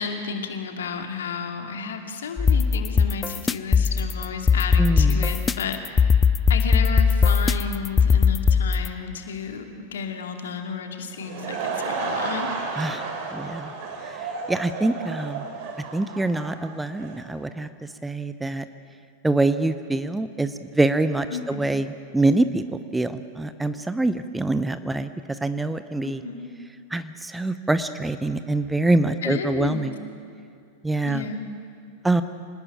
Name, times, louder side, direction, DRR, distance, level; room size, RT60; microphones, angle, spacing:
voice 1, 0.0-6.1 6.5-12.5 21.3-21.7 26.0-26.5 29.2-29.9 31.0-31.5, left 6 dB, 65° left, 5 dB, 2.6 m, -32 dB
sound 1, 2.4-8.9, left 5 dB, 15° left, 0.6 m, -20 dB
voice 2, 4.8-5.3 12.8-13.0 13.3-13.7 14.1-14.2 14.5-15.4 15.9-17.7 18.0-18.7 19.2-22.6 22.9-26.2 26.9-30.0 30.8-31.3 32.0-32.2, right 2 dB, 5° right, 11 dB, 0.9 m, -25 dB
Laughter / Crowd, 11.0-17.3, right 4 dB, 50° right, 4.3 m, -32 dB
26.5 x 19.0 x 8.9 m, 2.4 s
figure-of-eight pair, 90°, 0 cm